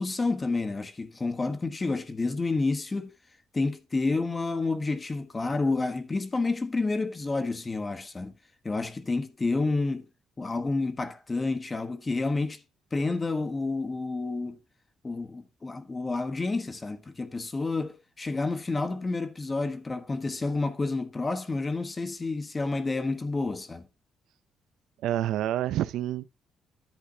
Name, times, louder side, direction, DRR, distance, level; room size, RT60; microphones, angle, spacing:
voice 1, 0.0-3.1 3.5-8.3 8.6-10.1 10.4-12.6 12.9-14.6 15.0-23.8, left 3 dB, 25° left, 1.2 m, -29 dB
voice 2, 25.0-26.3, right 12 dB, 85° right, 0.5 m, -28 dB
10.5 x 8.1 x 2.8 m
cardioid pair, 90°, 0 cm